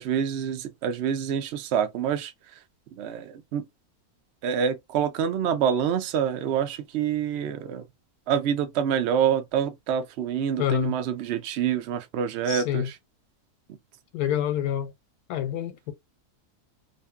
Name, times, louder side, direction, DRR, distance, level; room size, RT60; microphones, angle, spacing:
voice 1, 0.0-2.3 2.9-3.7 4.4-7.8 8.3-12.9, right 8 dB, 65° right, 0.6 m, -26 dB
voice 2, 10.6-11.0 12.5-12.9 14.1-14.9 15.3-15.9, left 10 dB, 90° left, 1.1 m, -27 dB
2.5 x 2.5 x 2.3 m
omnidirectional pair, 1.6 m